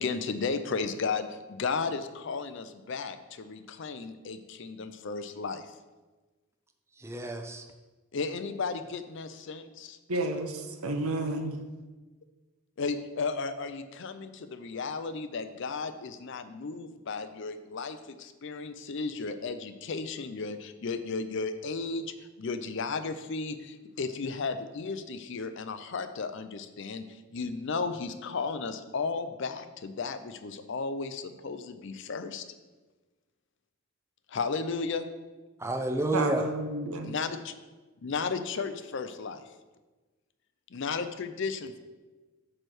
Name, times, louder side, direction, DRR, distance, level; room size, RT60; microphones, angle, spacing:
voice 1, 0.0-5.7 8.1-10.0 12.8-27.0 27.3-32.4 34.3-35.1 37.0-37.5 38.0-39.4 40.7-41.8, left 4 dB, 55° left, 0.5 m, -34 dB
voice 2, 7.0-7.6 35.6-36.4, right 2 dB, 10° right, 0.5 m, -30 dB
voice 3, 10.1-11.6 36.1-37.1, right 2 dB, 85° right, 0.9 m, -31 dB
8.7 x 3.3 x 6.2 m
head